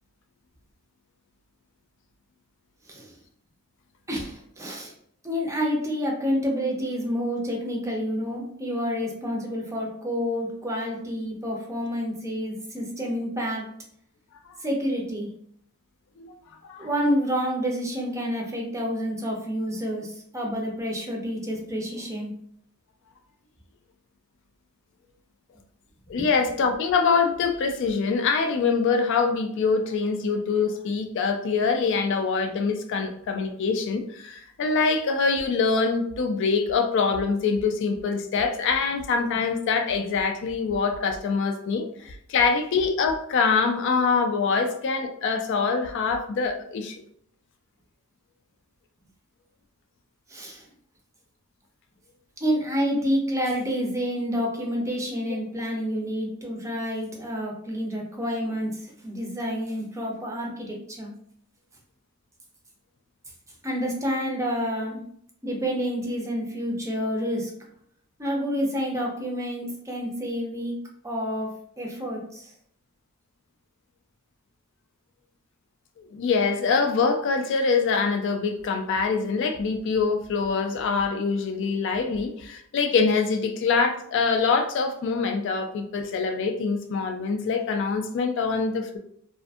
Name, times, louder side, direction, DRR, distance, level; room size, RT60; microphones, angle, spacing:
voice 1, 4.1-4.9 5.2-13.7 14.6-15.3 16.8-22.4 26.1-26.3 50.3-50.7 52.4-61.1 63.6-65.0 65.4-67.5 68.2-70.8 71.0-72.5, equal, 15° right, -1 dB, 0.5 m, -29 dB
voice 2, 26.1-47.0 76.0-89.0, left 5 dB, 55° left, 6 dB, 0.3 m, -24 dB
2.5 x 2.5 x 2.3 m, 0.67 s
head